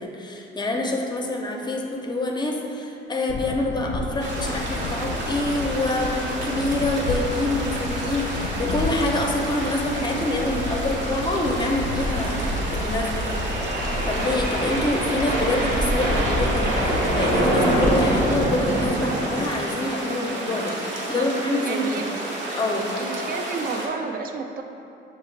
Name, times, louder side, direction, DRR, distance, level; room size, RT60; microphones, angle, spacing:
voice 1, 0.0-13.5 14.1-22.1 22.5-22.9, left 2 dB, 20° left, 1 dB, 0.5 m, -26 dB
sound 1, 3.3-19.0, left 3 dB, 80° left, 0.4 m, -32 dB
sound 2, 4.2-23.9, right 1 dB, 65° right, 0.7 m, -31 dB
sound 3, 7.3-7.4 7.6-7.7 8.0-8.1 8.6-8.9 10.2-19.5, right 1 dB, 90° right, 1.0 m, -25 dB
voice 2, 21.7-22.1 23.0-24.6, right 4 dB, 50° right, 4 dB, 0.4 m, -30 dB
6.3 x 2.4 x 3.2 m, 2.7 s
cardioid pair, 90°, 20 cm